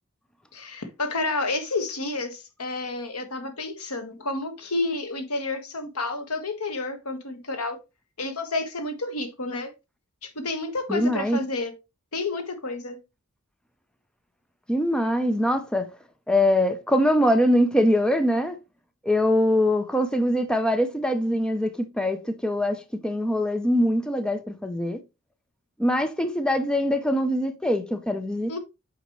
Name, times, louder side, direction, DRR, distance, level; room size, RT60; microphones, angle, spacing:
voice 1, 0.5-7.8 8.2-9.7 10.2-11.7 12.1-13.0 28.5-28.6, left 2 dB, 90° left, 1.5 m, -30 dB
voice 2, 10.9-11.4 14.7-15.9 16.3-18.6 19.0-25.0 25.8-28.6, left 1 dB, 5° left, 0.6 m, -23 dB
8.1 x 5.0 x 3.1 m
head